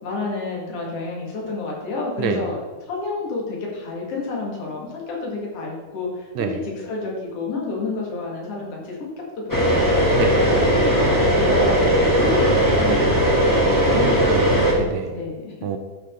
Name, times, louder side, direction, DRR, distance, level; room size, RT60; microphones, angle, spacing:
voice 1, 0.0-2.6 2.9-9.1 9.5-10.0 10.4-14.2 15.1-15.5, left 3 dB, 55° left, -2 dB, 3.1 m, -29 dB
sound 1, 9.5-14.7, equal, 5° left, 1.9 m, -18 dB
voice 2, 12.3-12.8 13.6-15.1 15.6-15.8, right 7 dB, 75° right, 6 dB, 1.9 m, -28 dB
13.5 x 6.4 x 3.9 m, 1.4 s
omnidirectional pair, 3.5 m